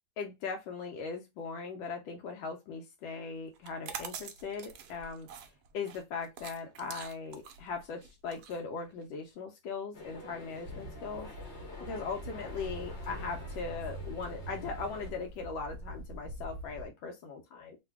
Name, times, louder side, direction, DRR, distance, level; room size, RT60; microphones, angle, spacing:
voice 1, 0.2-5.3 5.7-17.8, left 5 dB, 85° left, 1.4 m, -39 dB
sound 1, 3.6-9.3, right 7 dB, 70° right, 0.9 m, -46 dB
sound 2, 9.9-15.1, left 2 dB, 50° left, 0.8 m, -48 dB
Ocean, 10.6-16.9, right 1 dB, 30° right, 1.2 m, -44 dB
3.3 x 2.2 x 3.4 m
omnidirectional pair, 2.1 m